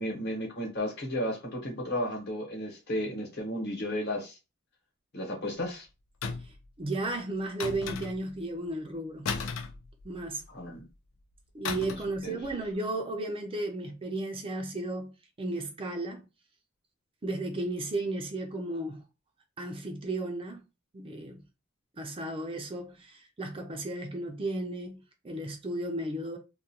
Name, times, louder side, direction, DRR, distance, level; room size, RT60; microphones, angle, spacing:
voice 1, 0.0-4.4 5.1-5.9 10.5-10.9 11.8-12.0 12.2-12.4, left 1 dB, 55° left, 1.0 m, -33 dB
sound 1, 6.2-6.7 7.6-8.4 9.2-10.4 11.6-12.2 12.4-12.6, left 5 dB, 90° left, 0.4 m, -35 dB
voice 2, 6.4-9.3 10.0-10.5 11.5-16.3 17.2-19.0 19.6-20.6 20.9-21.4 22.0-26.4, right 2 dB, 25° right, 0.4 m, -34 dB
2.3 x 2.2 x 2.8 m
head